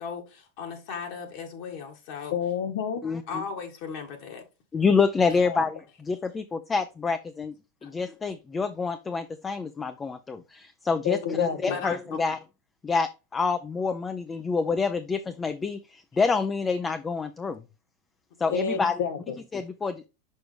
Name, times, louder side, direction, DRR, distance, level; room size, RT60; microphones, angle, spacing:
voice 1, 0.0-2.3 3.3-4.4 5.3-5.4 7.8-7.9 11.7-12.2 18.4-18.8, left 6 dB, 55° left, 1.6 m, -37 dB
voice 2, 2.3-3.0 5.4-5.6 11.0-11.8 18.5-19.3, left 7 dB, 90° left, 1.3 m, -29 dB
voice 3, 3.0-3.4 4.7-7.5 7.8-12.4 12.8-17.6 18.4-19.0 19.5-20.1, left 4 dB, 15° left, 0.4 m, -27 dB
6.2 x 5.0 x 3.3 m
supercardioid pair, 150°, 0 cm